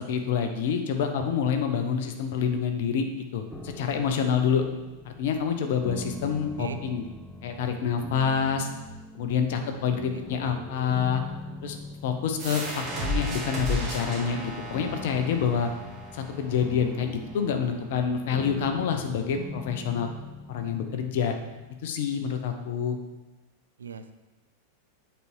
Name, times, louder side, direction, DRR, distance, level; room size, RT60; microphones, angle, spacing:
voice 1, 0.0-3.0 3.3-4.6 5.0-7.0 7.4-8.7 9.1-11.2 11.6-15.7 16.1-20.1 20.5-21.4 21.8-23.0, left 7 dB, 55° left, 6 dB, 0.8 m, -27 dB
sound 1, 3.5-22.5, left 2 dB, 5° left, 0.6 m, -43 dB
voice 2, 9.5-10.6 23.8-24.1, right 5 dB, 70° right, 8 dB, 0.5 m, -40 dB
sound 2, 12.4-17.8, equal, 30° right, 2.0 m, -34 dB
8.2 x 4.5 x 4.6 m, 1.1 s
figure-of-eight pair, 90°, 0 cm